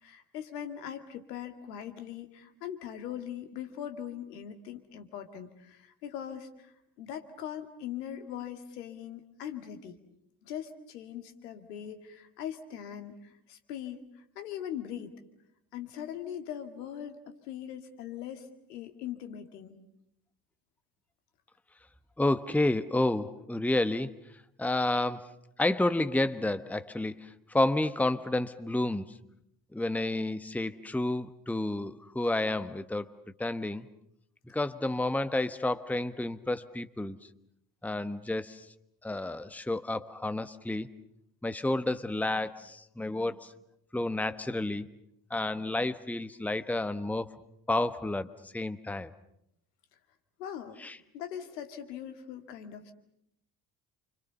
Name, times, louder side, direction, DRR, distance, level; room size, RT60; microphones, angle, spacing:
voice 1, 0.0-6.7 7.0-10.0 10.4-14.0 14.4-15.1 15.7-17.2 17.5-19.8 50.4-50.8 51.1-52.9, left 9 dB, 70° left, 7 dB, 2.3 m, -41 dB
voice 2, 22.2-24.1 24.6-25.3 25.6-29.1 29.7-33.1 33.4-33.9 34.5-37.2 37.8-38.7 39.0-40.9 41.4-43.5 43.9-44.9 45.3-47.3 47.7-49.1 50.8-51.0, left 2 dB, 5° left, 12 dB, 1.2 m, -30 dB
29.0 x 25.5 x 6.9 m, 0.78 s
figure-of-eight pair, 50°, 49 cm